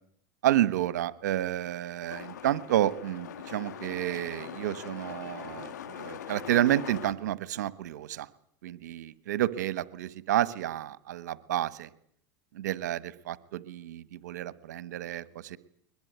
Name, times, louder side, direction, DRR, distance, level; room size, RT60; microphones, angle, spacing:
voice 1, 0.4-8.3 8.6-11.9 12.5-15.6, right 13 dB, 80° right, 16 dB, 1.2 m, -30 dB
sound 1, 2.1-7.1, left 9 dB, 90° left, 2.2 m, -42 dB
22.0 x 21.5 x 9.4 m, 0.69 s
hypercardioid pair, 105°, 9 cm